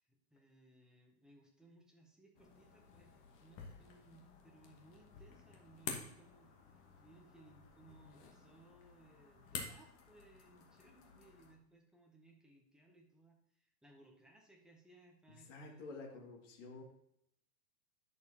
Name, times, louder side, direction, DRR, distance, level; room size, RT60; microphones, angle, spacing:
voice 1, 0.0-3.1 3.4-15.9, right 2 dB, ahead, 0 dB, 0.6 m, -64 dB
sound 1, 2.3-11.5, left 5 dB, 25° left, 1.2 m, -51 dB
voice 2, 15.5-16.8, left 3 dB, 50° left, 0 dB, 2.2 m, -50 dB
10.5 x 6.6 x 2.8 m, 0.74 s
hypercardioid pair, 145°, 48 cm